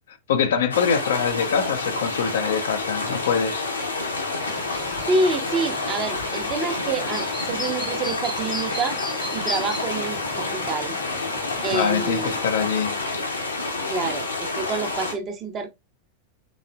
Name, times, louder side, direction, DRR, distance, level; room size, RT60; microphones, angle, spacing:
voice 1, 0.3-3.6 11.7-13.0, left 7 dB, 60° left, 0.5 m, -24 dB
sound 1, 0.7-15.2, left 3 dB, 75° left, 0.9 m, -28 dB
Chirp tweet, 4.4-12.4, left 1 dB, 10° left, 0.8 m, -37 dB
voice 2, 5.1-9.0 9.3-11.0 11.6-12.4 13.9-15.7, right 3 dB, 30° right, 0.9 m, -27 dB
4.0 x 3.2 x 2.4 m
figure-of-eight pair, 90°, 0 cm